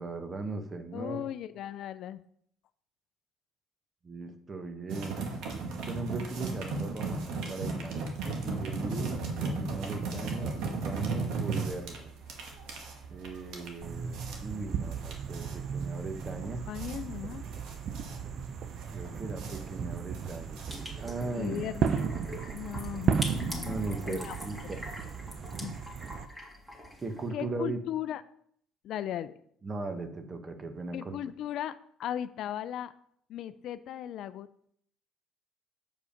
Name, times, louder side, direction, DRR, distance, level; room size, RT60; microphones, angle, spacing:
voice 1, 0.0-1.3 4.0-5.2 5.8-8.0 8.4-12.1 13.1-16.6 18.9-20.6 21.0-21.7 23.6-24.8 27.0-27.8 29.6-31.2, right 3 dB, 30° right, 8 dB, 1.1 m, -38 dB
voice 2, 0.9-2.2 16.7-17.4 19.1-19.2 21.3-22.2 22.5-24.4 24.6-24.7 25.6-25.8 27.3-28.2 28.8-29.3 30.9-32.9 33.3-34.5, left 11 dB, 65° left, 14 dB, 0.4 m, -37 dB
sound 1, 4.9-21.2, right 3 dB, 75° right, 1.4 m, -36 dB
sound 2, 13.8-26.3, right 7 dB, 50° right, 0.5 m, -35 dB
sound 3, 20.7-27.3, left 1 dB, 10° right, 2.1 m, -44 dB
7.1 x 4.9 x 5.0 m, 0.66 s
supercardioid pair, 90°, 0 cm